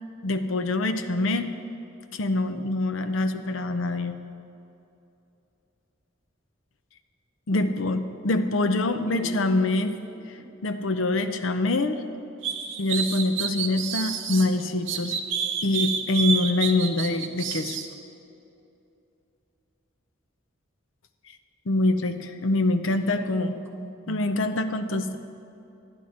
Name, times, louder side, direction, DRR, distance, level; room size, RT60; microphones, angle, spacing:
voice 1, 0.2-1.5 2.1-4.1 7.5-10.0 10.6-12.0 12.8-15.1 15.6-17.8 21.7-23.5 24.1-25.2, left 2 dB, 70° left, 8 dB, 0.6 m, -25 dB
voice 2, 9.1-10.5 22.9-24.4, right 1 dB, 10° right, 0 dB, 0.8 m, -41 dB
sound 1, 12.4-14.5 14.9-17.9, right 7 dB, 65° right, 0.8 m, -29 dB
11.0 x 11.0 x 4.3 m, 2.8 s
head